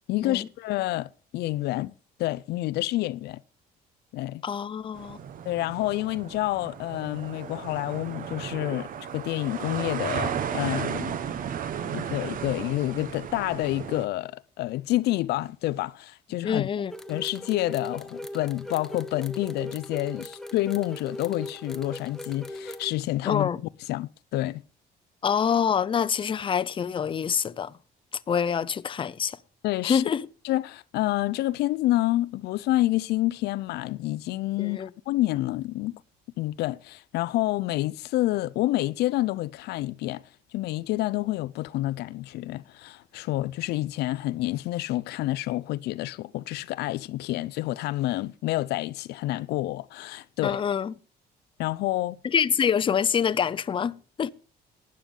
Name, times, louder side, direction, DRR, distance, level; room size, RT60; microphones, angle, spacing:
voice 1, 0.1-1.9 2.2-3.4 4.1-4.4 5.5-11.1 11.9-16.7 17.1-23.5 23.9-24.6 29.6-30.0 30.4-36.0 36.4-40.2 40.5-50.6 51.6-52.2, left 16 dB, 75° left, 0.4 m, -28 dB
voice 2, 4.4-5.2 16.4-16.9 23.2-23.6 25.2-27.7 28.3-29.4 29.8-30.3 34.6-34.9 50.4-50.9 52.2-54.3, left 7 dB, 30° left, 0.6 m, -26 dB
sound 1, 4.9-14.1, right 8 dB, 55° right, 1.0 m, -34 dB
sound 2, 16.9-22.9, left 1 dB, 5° left, 1.0 m, -39 dB
12.0 x 8.9 x 5.3 m
cardioid pair, 110°, 17 cm